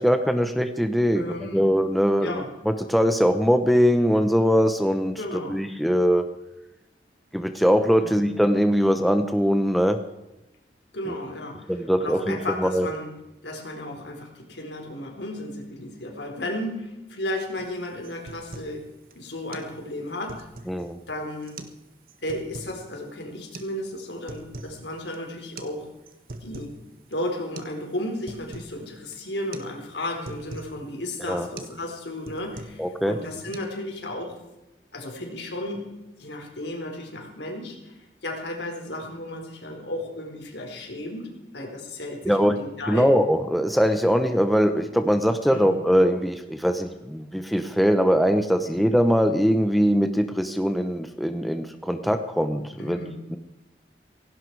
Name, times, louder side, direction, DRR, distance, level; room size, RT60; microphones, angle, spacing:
voice 1, 0.0-5.1 5.5-6.3 7.3-10.0 11.1-11.2 11.7-12.9 20.7-21.0 31.3-31.5 32.8-33.2 42.2-42.6 42.9-53.0 53.3-53.4, equal, ahead, 7 dB, 0.9 m, -22 dB
voice 2, 1.1-1.7 2.2-2.5 5.2-5.6 8.0-8.2 10.9-13.1 13.4-18.8 19.1-20.5 21.1-21.6 22.2-25.9 26.4-26.7 27.1-34.4 34.9-35.9 36.2-43.1 45.5-45.7 48.6-48.8 52.8-53.2, left 1 dB, 85° left, 2 dB, 4.2 m, -34 dB
sound 1, 17.6-17.7 18.0-18.8 19.1-19.2 19.5-19.7 20.1-20.8 21.4-21.8 22.1-22.8 23.5-23.7 24.1-24.8 25.1-25.2 25.6-25.7 26.1-26.8 27.1-27.2 27.6-27.8 28.0-28.7 29.1-29.3 29.5-29.7 30.0-30.7 31.1-31.3 31.6-31.8 32.1-32.9 33.2-33.6, right 2 dB, 55° right, 1.5 m, -41 dB
17.0 x 17.0 x 4.8 m, 0.99 s
head